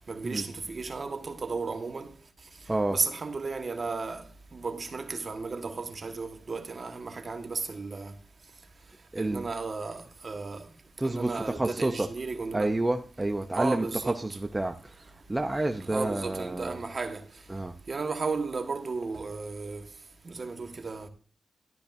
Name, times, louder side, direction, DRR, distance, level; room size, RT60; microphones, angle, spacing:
voice 1, 0.1-2.1 2.9-4.2 4.5-8.1 9.2-10.6 11.0-12.7 13.5-14.2 15.9-17.2 17.9-19.9 20.2-21.1, right 4 dB, 50° right, 1.4 m, -34 dB
voice 2, 2.7-3.0 9.1-9.5 11.0-12.1 12.5-16.8 17.5-17.7, right 2 dB, 20° right, 0.8 m, -30 dB
12.5 x 12.0 x 2.7 m
supercardioid pair, 45°, 0 cm